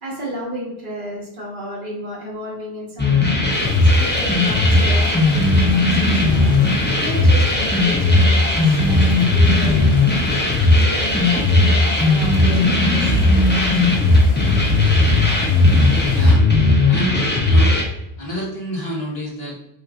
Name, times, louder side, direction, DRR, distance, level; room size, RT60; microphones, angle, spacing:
voice 1, 0.0-6.5 7.0-9.9 10.7-13.2 13.5-14.0 15.5-16.1, equal, 55° right, -5 dB, 1.4 m, -33 dB
sound 1, 3.0-17.8, left 2 dB, 10° left, 0.6 m, -16 dB
sound 2, 3.5-16.4, left 2 dB, 45° left, 0.9 m, -34 dB
voice 2, 16.8-17.7 18.2-19.5, equal, 70° left, -5 dB, 1.6 m, -28 dB
5.3 x 2.7 x 2.4 m, 0.83 s
omnidirectional pair, 1.0 m